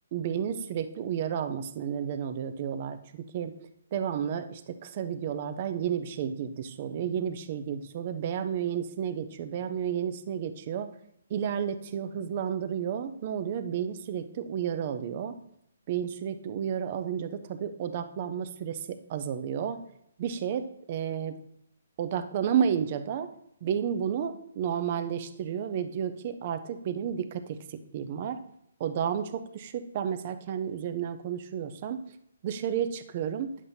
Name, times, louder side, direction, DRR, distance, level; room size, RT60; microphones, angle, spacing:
voice 1, 0.1-3.5 3.9-10.9 11.3-15.3 15.9-19.8 20.2-21.4 22.0-23.3 23.6-28.4 28.8-32.0 32.4-33.6, right 8 dB, 25° right, 9 dB, 0.4 m, -31 dB
10.0 x 7.2 x 2.6 m, 0.75 s
hypercardioid pair, 180°, 0 cm